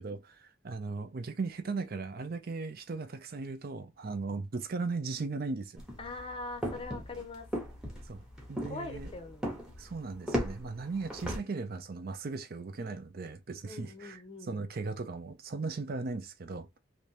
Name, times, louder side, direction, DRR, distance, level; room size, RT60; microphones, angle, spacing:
voice 1, 0.0-5.8 8.1-9.1 9.8-16.8, right 4 dB, 50° right, 0.5 m, -37 dB
sound 1, 5.8-11.4, equal, 5° right, 0.9 m, -37 dB
voice 2, 6.0-7.5 8.6-9.5 13.7-14.6, left 3 dB, 25° left, 0.6 m, -42 dB
3.3 x 2.6 x 2.8 m
head